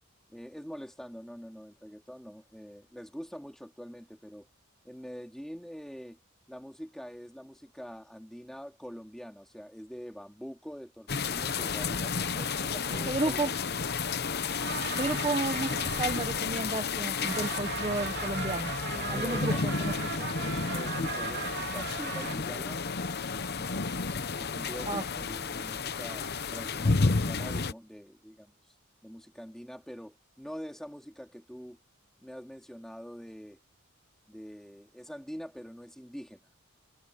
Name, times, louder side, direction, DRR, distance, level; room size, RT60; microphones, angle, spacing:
voice 1, 0.3-4.5 4.8-6.2 6.5-13.4 19.1-19.6 20.7-22.8 24.4-28.5 29.0-31.8 32.2-33.6 34.3-36.4, equal, ahead, 3.3 m, -44 dB
sound 1, 11.1-27.7, left 4 dB, 50° left, 0.9 m, -32 dB
voice 2, 12.4-13.5 14.9-19.9 20.2-20.3 24.9-25.0, right 2 dB, 25° right, 1.1 m, -33 dB
sound 2, 14.6-16.7 17.0-22.4, right 6 dB, 55° right, 2.6 m, -38 dB
head